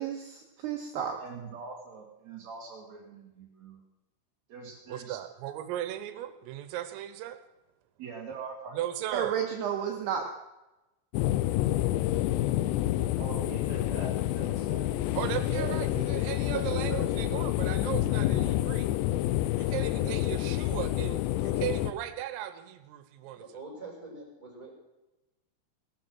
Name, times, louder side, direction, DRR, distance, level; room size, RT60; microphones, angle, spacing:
voice 1, 0.0-1.2 9.1-10.3, right 8 dB, 70° right, 2 dB, 2.8 m, -32 dB
voice 2, 1.2-3.8 4.5-5.2 8.0-8.8 13.2-14.9, right 4 dB, 55° right, -2 dB, 2.2 m, -43 dB
voice 3, 4.9-7.4 8.7-9.4 15.2-18.9 19.6-23.5, right 12 dB, 85° right, 11 dB, 3.6 m, -37 dB
sound 1, 11.1-21.9, left 14 dB, 85° left, 2.6 m, -28 dB
voice 4, 15.3-15.8 16.5-17.2 19.7-20.1 23.3-24.7, right 4 dB, 10° left, -2 dB, 5.5 m, -40 dB
18.0 x 12.0 x 6.1 m, 1.0 s
omnidirectional pair, 5.8 m